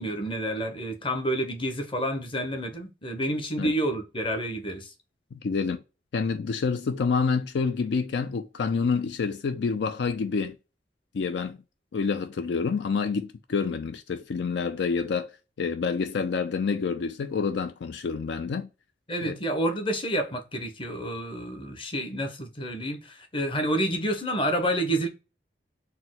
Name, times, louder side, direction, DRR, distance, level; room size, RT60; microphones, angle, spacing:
voice 1, 0.0-4.9 19.1-25.1, right 1 dB, 30° left, 0.8 m, -29 dB
voice 2, 5.3-5.8 6.1-10.6 11.1-11.6 11.9-15.3 15.6-18.7 19.2-19.3, left 5 dB, 75° left, 0.4 m, -28 dB
4.2 x 2.2 x 3.7 m
head